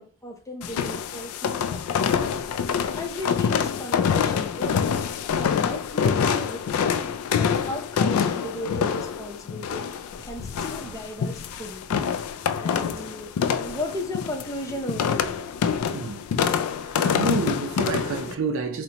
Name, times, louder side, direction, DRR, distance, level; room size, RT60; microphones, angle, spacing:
voice 1, 0.0-2.4 3.0-5.1 5.3-6.9 7.4-9.9 10.2-11.8 12.6-15.5, left 1 dB, 15° left, 0.6 m, -36 dB
sound 1, 0.6-18.3, left 7 dB, 85° left, 0.3 m, -26 dB
voice 2, 15.9-16.3 16.8-18.8, right 3 dB, 65° right, 0.5 m, -29 dB
3.9 x 2.1 x 2.8 m
head